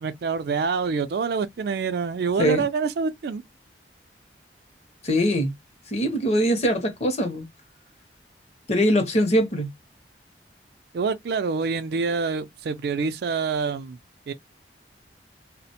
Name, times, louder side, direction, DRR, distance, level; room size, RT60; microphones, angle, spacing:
voice 1, 0.0-3.4 10.9-14.0 14.3-14.4, right 5 dB, 60° right, 0.4 m, -26 dB
voice 2, 5.0-5.5 5.9-7.5 8.7-9.7, equal, 35° left, 0.6 m, -22 dB
2.4 x 2.1 x 2.8 m
head